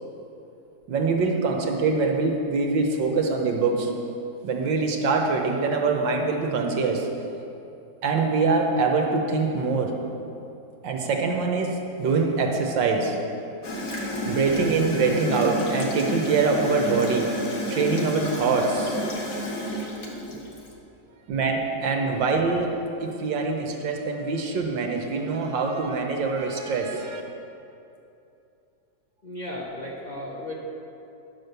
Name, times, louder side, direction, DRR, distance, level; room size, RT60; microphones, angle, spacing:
voice 1, 0.9-3.9 4.4-7.1 8.0-10.0 10.8-13.1 14.2-17.3 17.7-19.0 21.3-27.2, right 4 dB, 75° right, 2 dB, 1.6 m, -24 dB
Gurgling / Toilet flush, 13.6-20.7, left 1 dB, 50° left, 1.6 m, -30 dB
voice 2, 14.4-14.8 21.8-22.0 29.2-30.5, left 1 dB, 25° left, -5 dB, 1.1 m, -36 dB
10.0 x 6.2 x 6.7 m, 2.8 s
omnidirectional pair, 2.1 m